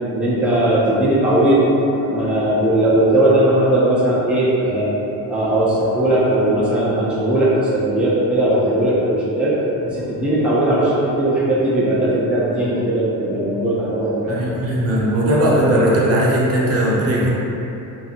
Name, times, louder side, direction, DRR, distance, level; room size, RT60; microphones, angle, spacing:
voice 1, 0.1-1.6 2.0-4.9 5.3-9.5 9.8-14.4, right 1 dB, 5° right, -8 dB, 0.5 m, -18 dB
voice 2, 14.3-17.3, right 1 dB, 40° right, -5 dB, 0.7 m, -18 dB
2.7 x 2.4 x 2.7 m, 3.0 s
cardioid pair, 110°, 37 cm